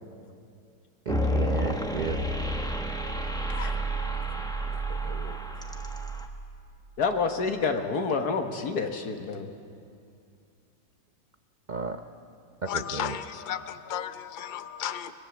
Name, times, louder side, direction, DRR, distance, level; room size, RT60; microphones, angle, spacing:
sound 1, 1.1-6.3, right 1 dB, 5° left, 1.0 m, -30 dB
voice 1, 1.1-2.3 11.7-12.0 12.6-13.1, right 5 dB, 70° right, 0.4 m, -33 dB
voice 2, 4.9-5.4 7.0-9.5, left 4 dB, 60° left, 2.0 m, -29 dB
voice 3, 12.7-15.1, left 9 dB, 80° left, 0.4 m, -34 dB
25.0 x 21.0 x 7.3 m
omnidirectional pair, 1.9 m